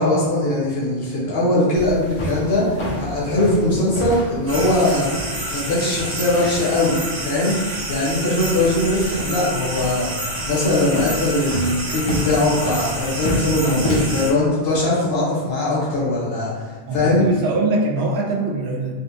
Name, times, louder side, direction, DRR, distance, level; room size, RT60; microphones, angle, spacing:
voice 1, 0.0-5.1 5.5-7.6 7.9-10.1 10.5-17.3, left 1 dB, 70° left, -7 dB, 1.3 m, -20 dB
sound 1, 1.8-14.2, left 1 dB, 40° left, 0.4 m, -30 dB
sound 2, 4.5-14.3, right 1 dB, 70° right, 1.2 m, -29 dB
voice 2, 16.9-18.9, right 2 dB, 85° right, -1 dB, 0.9 m, -23 dB
4.2 x 2.1 x 2.7 m, 1.4 s
omnidirectional pair, 1.0 m